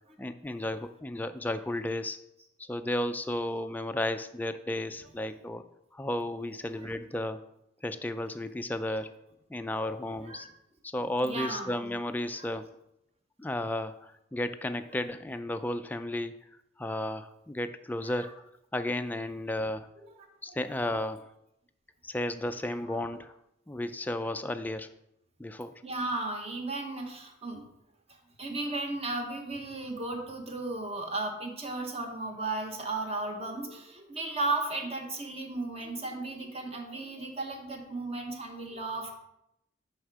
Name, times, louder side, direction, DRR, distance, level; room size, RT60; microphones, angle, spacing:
voice 1, 0.2-2.2 2.7-5.6 5.9-7.4 7.8-9.1 9.5-10.5 10.9-12.7 13.4-16.3 16.8-18.3 18.7-20.0 20.4-21.3 22.0-23.3 23.7-24.9 25.4-25.8, left 1 dB, 10° left, 8 dB, 0.3 m, -33 dB
voice 2, 6.6-7.0 8.7-9.0 10.2-10.5 11.2-11.7 12.3-12.5 14.8-15.0 18.0-18.4 20.0-20.9 22.6-23.0 25.8-27.6 28.4-39.1, right 2 dB, 35° right, 3 dB, 1.1 m, -35 dB
6.3 x 5.7 x 4.7 m, 0.81 s
head